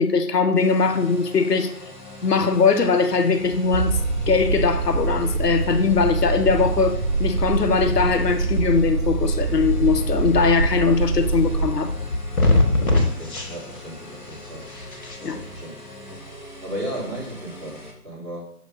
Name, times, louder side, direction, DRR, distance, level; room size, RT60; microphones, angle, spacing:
voice 1, 0.0-1.7 2.2-4.0 4.3-11.9 15.2-15.4, left 5 dB, 75° left, 7 dB, 0.8 m, -20 dB
sound 1, 0.5-17.9, left 1 dB, 30° left, 1.0 m, -42 dB
sound 2, 3.4-15.6, left 2 dB, 60° left, 1.6 m, -28 dB
sound 3, 3.7-11.7, right 4 dB, 85° right, 0.9 m, -24 dB
voice 2, 12.9-14.6 15.2-15.7 16.6-18.5, right 1 dB, 20° right, -12 dB, 2.5 m, -35 dB
6.6 x 3.0 x 5.2 m, 0.65 s
figure-of-eight pair, 175°, 48 cm